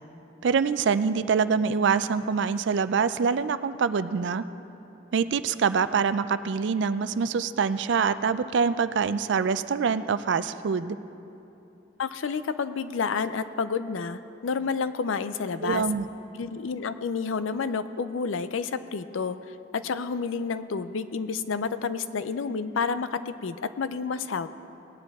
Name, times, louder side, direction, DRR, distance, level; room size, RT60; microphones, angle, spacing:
voice 1, 0.4-4.4 5.1-11.0 15.6-16.1, right 5 dB, 65° right, 13 dB, 0.4 m, -25 dB
voice 2, 12.0-15.9 16.3-19.4 19.7-24.5, left 5 dB, 85° left, 13 dB, 0.5 m, -30 dB
18.5 x 9.9 x 3.5 m, 2.9 s
head